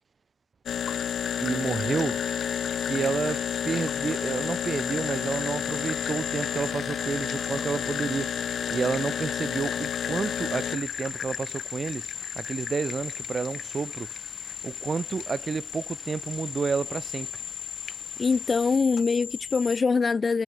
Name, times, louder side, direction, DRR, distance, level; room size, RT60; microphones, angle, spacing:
sound 1, 0.7-19.8, left 8 dB, 60° left, 0.5 m, -32 dB
voice 1, 1.4-2.2 2.8-14.1 14.4-17.4, right 5 dB, 35° right, 1.2 m, -30 dB
sound 2, 3.2-18.8, left 2 dB, 20° left, 3.8 m, -51 dB
voice 2, 18.2-20.4, left 4 dB, 35° left, 1.0 m, -23 dB
cardioid pair, 90°, 0 cm